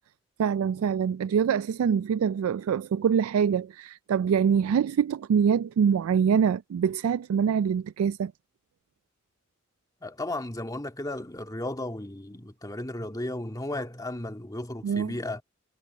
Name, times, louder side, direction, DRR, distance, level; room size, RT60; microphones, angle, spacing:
voice 1, 0.4-8.3 14.8-15.1, right 7 dB, 85° right, 0.3 m, -24 dB
voice 2, 10.0-15.4, left 1 dB, 15° left, 2.1 m, -34 dB
head